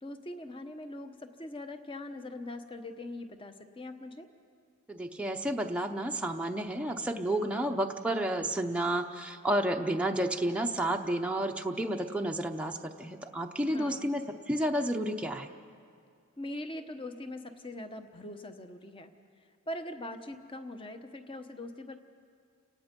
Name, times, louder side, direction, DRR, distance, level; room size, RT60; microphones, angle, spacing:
voice 1, 0.0-4.3 13.7-14.1 16.4-19.1 19.4-21.9, left 1 dB, 25° left, 7 dB, 1.0 m, -42 dB
voice 2, 4.9-15.5, right 1 dB, 5° right, 2 dB, 0.7 m, -31 dB
30.0 x 18.0 x 5.3 m, 2.3 s
head